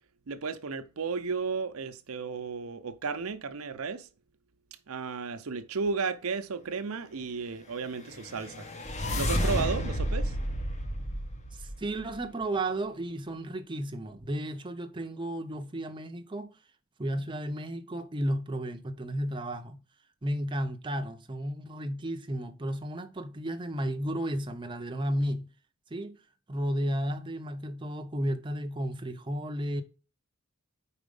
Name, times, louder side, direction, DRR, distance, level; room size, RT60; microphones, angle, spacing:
voice 1, 0.3-4.1 4.9-8.7 9.1-10.4, right 5 dB, 80° right, 0.7 m, -34 dB
sound 1, 8.0-12.2, equal, 30° left, 0.8 m, -31 dB
voice 2, 11.5-16.5 17.0-19.8 20.2-25.5 25.9-26.2 26.5-29.8, right 1 dB, 20° right, 0.6 m, -33 dB
5.0 x 4.2 x 5.3 m
head